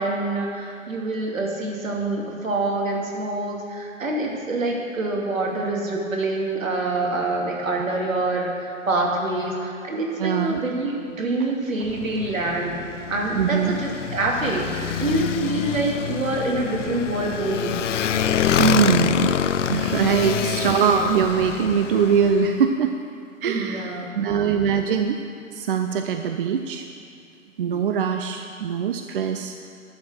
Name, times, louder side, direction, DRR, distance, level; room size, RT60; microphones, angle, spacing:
voice 1, 0.0-12.8 13.1-17.8 20.1-20.5 23.4-24.3, right 2 dB, 70° right, -1 dB, 2.7 m, -26 dB
voice 2, 10.2-10.6 13.3-13.7 18.6-19.3 19.7-22.9 23.4-25.2 25.5-26.9 27.6-29.5, right 7 dB, 40° right, 6 dB, 0.6 m, -22 dB
Motorcycle, 11.8-22.5, left 9 dB, 60° left, 0.6 m, -26 dB
11.5 x 6.6 x 7.9 m, 2.4 s
figure-of-eight pair, 125°, 41 cm